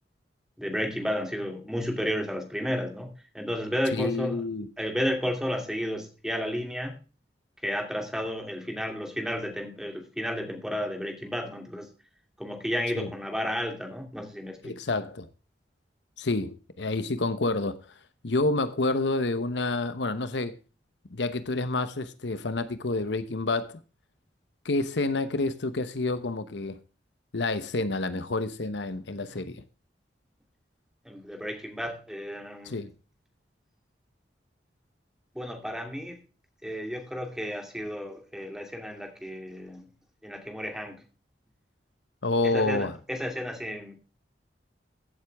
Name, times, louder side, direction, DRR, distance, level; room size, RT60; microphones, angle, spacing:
voice 1, 0.6-4.4 4.8-7.0 7.6-11.9 12.4-14.8 29.4-29.5 31.0-32.8 35.3-36.2 36.6-39.9 40.2-41.0 42.4-44.0, equal, 5° right, 2.6 m, -32 dB
voice 2, 3.9-4.7 13.0-13.1 14.6-15.3 16.2-17.9 18.2-20.5 21.1-23.8 24.6-26.8 27.3-29.6 32.6-32.9 42.2-43.0, left 2 dB, 75° left, 0.9 m, -28 dB
15.5 x 7.9 x 3.5 m
head